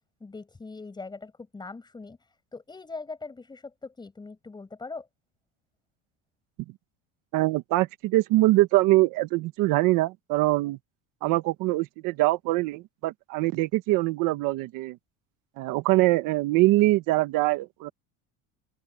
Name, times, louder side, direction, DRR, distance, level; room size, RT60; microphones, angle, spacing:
voice 1, 0.2-2.2 2.5-5.1, left 3 dB, 10° left, 7.9 m, -41 dB
voice 2, 7.3-10.8 11.2-15.0 15.6-17.9, right 19 dB, 60° right, 1.3 m, -23 dB
open air
cardioid pair, 165°, 36 cm